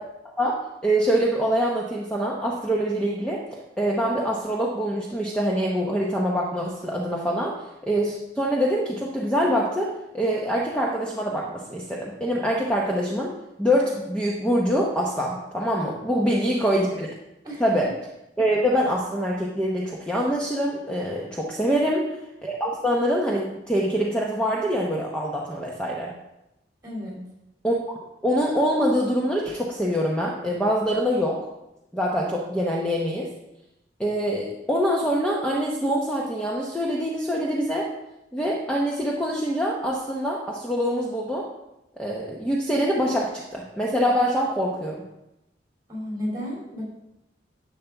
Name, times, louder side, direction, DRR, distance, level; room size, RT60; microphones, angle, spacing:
voice 1, 0.4-3.4 3.8-7.6 7.8-13.3 13.6-17.1 17.6-17.9 18.4-22.0 22.4-26.1 27.6-27.8 28.2-31.4 31.9-33.3 34.0-37.9 38.3-41.4 42.0-45.0, equal, 5° left, -3 dB, 0.8 m, -24 dB
voice 2, 16.1-16.4 17.4-17.9 21.7-22.1 26.8-27.2 45.9-46.8, equal, 20° right, -3 dB, 3.0 m, -34 dB
10.5 x 6.9 x 3.5 m, 0.90 s
head